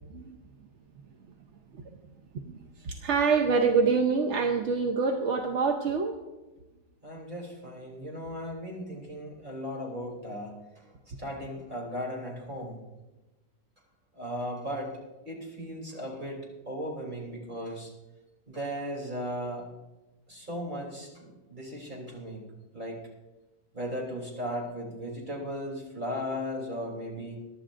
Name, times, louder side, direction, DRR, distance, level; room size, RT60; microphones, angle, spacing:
voice 1, 2.8-6.2, right 5 dB, 55° right, 4 dB, 0.9 m, -26 dB
voice 2, 7.0-10.9 11.2-12.8 14.1-14.9 15.2-16.4 16.6-17.9 18.5-19.7 20.3-22.4 22.7-23.0 23.7-27.4, equal, 25° right, -2 dB, 3.2 m, -36 dB
22.5 x 11.0 x 2.5 m, 1.1 s
omnidirectional pair, 1.9 m